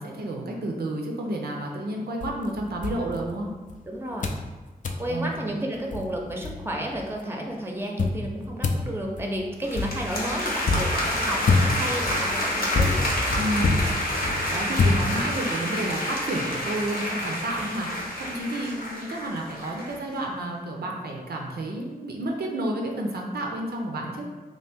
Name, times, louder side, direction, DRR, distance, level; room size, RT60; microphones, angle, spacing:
voice 1, 0.0-3.5 5.1-5.6 13.3-13.8 14.3-24.3, right 1 dB, 90° right, 0 dB, 0.5 m, -31 dB
sound 1, 2.2-3.8 4.2-4.5 4.8-5.1 5.6-5.7 5.9-7.0 8.0-15.6, left 3 dB, 55° left, 0.4 m, -27 dB
voice 2, 3.8-4.3 5.0-13.1, equal, 15° right, 0 dB, 0.6 m, -32 dB
sound 2, 9.6-20.0, left 1 dB, 70° left, 0.8 m, -29 dB
2.9 x 2.5 x 3.4 m, 1.2 s
cardioid pair, 55°, 16 cm